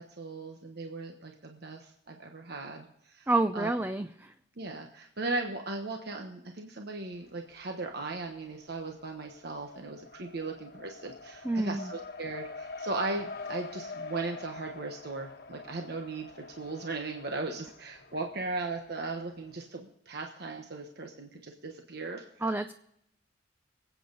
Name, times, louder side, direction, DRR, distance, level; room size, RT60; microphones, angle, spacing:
voice 1, 0.0-3.8 4.6-22.2, right 3 dB, 60° right, 3 dB, 1.2 m, -38 dB
voice 2, 3.3-4.3 11.4-11.9 22.4-22.7, right 2 dB, 10° right, 9 dB, 0.4 m, -29 dB
Race car auto racing, 7.1-7.9 8.2-19.5, left 3 dB, 55° left, 1.2 m, -45 dB
25.0 x 8.6 x 4.0 m, 0.78 s
head